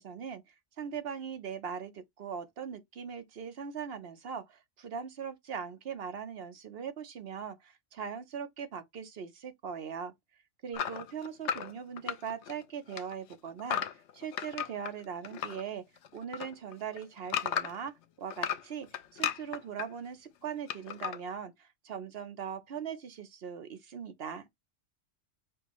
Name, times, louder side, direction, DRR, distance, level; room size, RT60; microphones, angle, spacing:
voice 1, 0.0-10.1 10.6-13.8 14.1-15.8 16.1-18.9 19.1-24.4, right 7 dB, 55° right, 1.0 m, -40 dB
sound 1, 10.7-12.6 12.9-15.6 16.0-17.9 18.3-19.9 20.7-21.2, left 9 dB, 75° left, 0.9 m, -35 dB
6.1 x 2.7 x 3.0 m
omnidirectional pair, 1.2 m